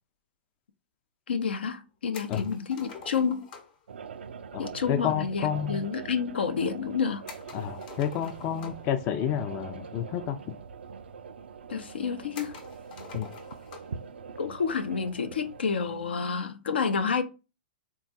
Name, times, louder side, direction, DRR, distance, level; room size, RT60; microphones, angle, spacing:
voice 1, 1.3-3.5 4.6-7.2 11.7-12.5 14.4-17.2, left 6 dB, 80° left, 0.6 m, -29 dB
sound 1, 2.1-3.8 7.3-9.0 10.0-10.1 10.4-10.5 11.3-11.4 12.3-14.0, left 5 dB, 55° left, 0.9 m, -46 dB
sound 2, 3.9-16.1, right 6 dB, 80° right, 0.3 m, -43 dB
voice 2, 4.5-5.8 7.5-10.6 13.1-13.3, left 9 dB, 35° left, 0.4 m, -30 dB
3.6 x 2.3 x 3.9 m
hypercardioid pair, 120°, 6 cm